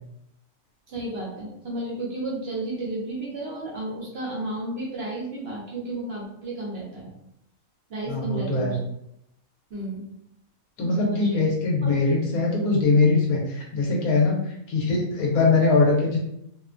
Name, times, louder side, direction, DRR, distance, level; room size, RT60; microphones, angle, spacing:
voice 1, 0.9-7.1 7.9-8.8 9.7-10.1 10.8-11.5 11.8-11.9, right 1 dB, 55° right, -4 dB, 0.9 m, -32 dB
voice 2, 8.1-8.8 10.8-16.2, left 3 dB, 90° left, -1 dB, 1.2 m, -22 dB
2.9 x 2.2 x 2.4 m, 0.77 s
omnidirectional pair, 1.5 m